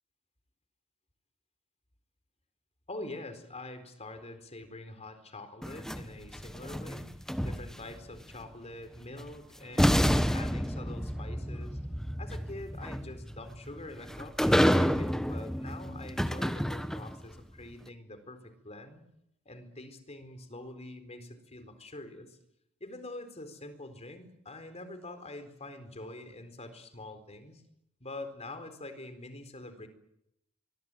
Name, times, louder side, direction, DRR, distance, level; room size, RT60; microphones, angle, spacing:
voice 1, 2.9-7.1 7.4-11.8 12.2-19.0 19.5-22.4 22.8-27.6 28.0-29.9, left 2 dB, 30° left, 9 dB, 4.1 m, -45 dB
sound 1, 5.6-8.0 9.2-9.3 9.8-17.3, equal, ahead, 1.0 m, -29 dB
24.0 x 23.0 x 9.1 m, 0.81 s
head